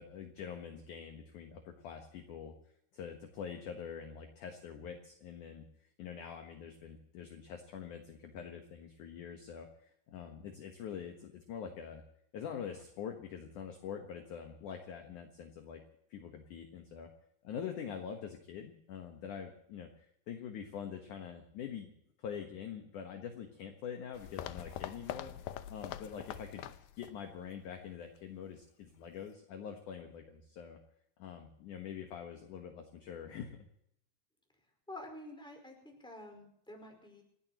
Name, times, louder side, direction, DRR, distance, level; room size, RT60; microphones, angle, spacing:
voice 1, 0.0-2.5 2.9-5.6 6.0-12.0 12.3-15.8 16.1-17.1 17.4-21.9 22.2-25.3 25.7-26.6 27.0-30.8 31.2-33.6, left 7 dB, 65° left, 4 dB, 2.2 m, -45 dB
sound 1, 24.1-27.2 27.5-27.6 28.2-28.3, left 12 dB, 85° left, 2.0 m, -44 dB
voice 2, 34.9-37.2, left 1 dB, ahead, 2 dB, 4.4 m, -49 dB
29.0 x 15.5 x 3.0 m, 0.72 s
omnidirectional pair, 5.1 m